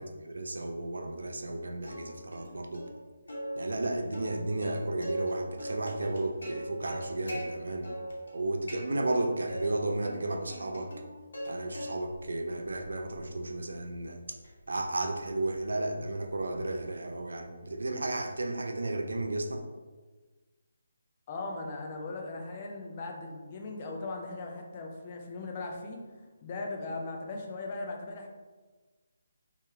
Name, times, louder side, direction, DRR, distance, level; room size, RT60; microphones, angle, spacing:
voice 1, 0.0-2.8 3.6-7.9 8.3-10.9 11.5-14.2 14.7-19.6, right 2 dB, 85° right, 4 dB, 0.5 m, -33 dB
Plucked string instrument, 1.8-2.5 2.7-2.9 3.3-5.3 5.6-7.4 7.8-8.4 8.7-9.7 10.0-11.5 11.7-12.2 12.7-16.9, equal, 85° left, 1.2 m, -41 dB
voice 2, 21.3-26.0 26.4-28.3, left 3 dB, 20° left, 1 dB, 0.3 m, -38 dB
3.1 x 3.0 x 3.4 m, 1.3 s
hypercardioid pair, 180°, 0 cm